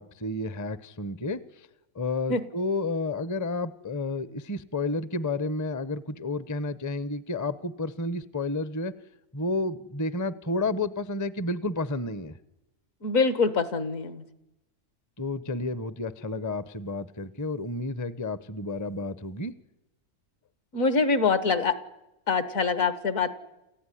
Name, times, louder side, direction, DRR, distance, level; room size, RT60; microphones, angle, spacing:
voice 1, 0.0-1.7 1.9-8.9 9.3-12.4 15.2-19.5, left 2 dB, 15° left, 16 dB, 0.6 m, -31 dB
voice 2, 13.0-14.2 20.7-21.8 22.3-23.3, left 4 dB, 60° left, 14 dB, 1.9 m, -24 dB
28.5 x 15.5 x 10.0 m, 0.96 s
omnidirectional pair, 1.6 m